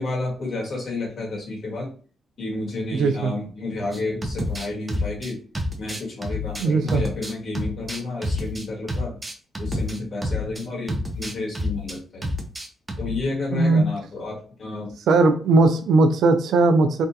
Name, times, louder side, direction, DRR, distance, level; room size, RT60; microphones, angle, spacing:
voice 1, 0.0-1.9 2.4-5.4 5.8-9.2 9.6-12.3 13.0-14.9, left 2 dB, 50° left, -3 dB, 1.6 m, -31 dB
voice 2, 2.9-3.3 6.6-7.0 13.5-13.8 15.1-17.1, right 3 dB, 80° right, 7 dB, 0.4 m, -18 dB
sound 1, 3.9-10.6 10.9-12.0 12.2-13.2, left 1 dB, 15° right, 0.5 m, -28 dB
3.4 x 2.3 x 2.7 m, 0.40 s
cardioid pair, 125°, 0 cm